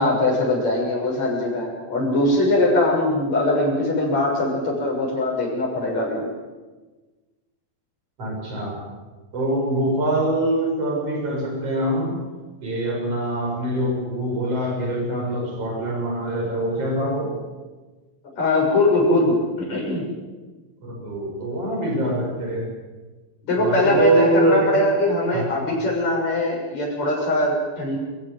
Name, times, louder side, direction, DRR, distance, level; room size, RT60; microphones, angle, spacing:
voice 1, 0.0-6.3 18.4-20.1 23.4-28.0, left 1 dB, 50° left, -2 dB, 8.3 m, -21 dB
voice 2, 8.2-8.7 9.3-12.2 12.6-17.4 20.8-22.6 23.6-24.8 25.3-25.4, right 1 dB, 40° right, 0 dB, 7.1 m, -24 dB
27.5 x 15.5 x 8.0 m, 1.3 s
omnidirectional pair, 4.2 m